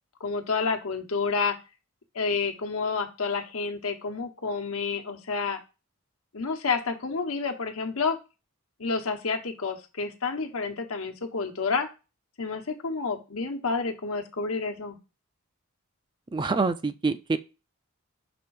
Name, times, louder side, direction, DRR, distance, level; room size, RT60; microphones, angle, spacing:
voice 1, 0.2-1.6 2.1-5.6 6.3-8.2 8.8-11.9 12.4-15.0, left 4 dB, 75° left, 4 dB, 1.1 m, -29 dB
voice 2, 16.3-17.4, right 4 dB, 20° right, 12 dB, 0.4 m, -26 dB
6.0 x 3.5 x 4.7 m, 0.29 s
head